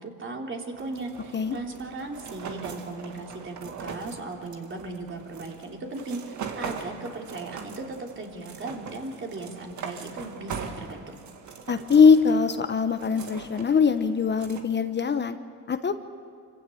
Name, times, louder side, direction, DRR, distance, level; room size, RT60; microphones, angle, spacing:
voice 1, 0.0-11.1, right 3 dB, 40° right, 1 dB, 3.3 m, -37 dB
sound 1, 0.7-14.6, right 6 dB, 75° right, 2.1 m, -41 dB
voice 2, 11.7-15.4 15.7-16.0, left 5 dB, 35° left, 9 dB, 1.1 m, -21 dB
26.5 x 15.5 x 8.6 m, 2.3 s
cardioid pair, 90°, 30 cm